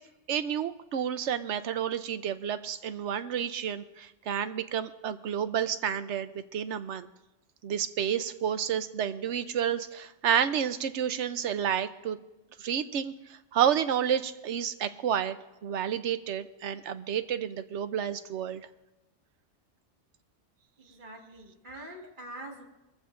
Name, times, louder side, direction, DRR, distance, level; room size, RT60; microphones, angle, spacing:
voice 1, 0.3-7.1 7.6-12.2 12.6-13.1 13.5-15.4 15.6-18.7, right 9 dB, 85° right, 12 dB, 1.0 m, -30 dB
voice 2, 20.8-22.6, right 1 dB, 45° right, 0 dB, 2.2 m, -44 dB
21.5 x 14.5 x 2.5 m, 0.98 s
omnidirectional pair, 1.2 m